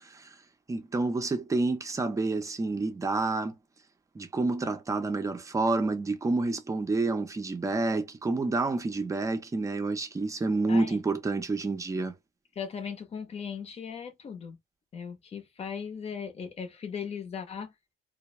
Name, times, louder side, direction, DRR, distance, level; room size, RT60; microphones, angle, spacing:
voice 1, 0.7-3.5 4.2-12.1, right 3 dB, 20° right, 0.6 m, -29 dB
voice 2, 10.7-11.0 12.6-14.6 14.9-17.7, left 6 dB, 35° left, 0.7 m, -38 dB
2.2 x 2.1 x 3.0 m
cardioid pair, 110°, 17 cm